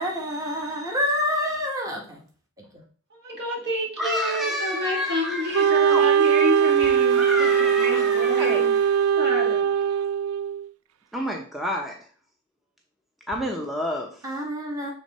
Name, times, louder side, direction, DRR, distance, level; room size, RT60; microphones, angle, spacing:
voice 1, 0.0-2.2 2.6-2.8 7.8-8.7 14.2-14.9, equal, 15° right, -1 dB, 1.2 m, -29 dB
voice 2, 3.1-9.9, equal, 55° right, -1 dB, 2.0 m, -29 dB
voice 3, 4.0-6.1 7.1-8.6 11.1-12.0 13.3-14.1, left 1 dB, ahead, 0 dB, 0.7 m, -29 dB
Wind instrument woodwind instrument, 5.5-10.7, right 8 dB, 85° right, 0.4 m, -20 dB
7.0 x 3.6 x 4.1 m, 0.43 s
head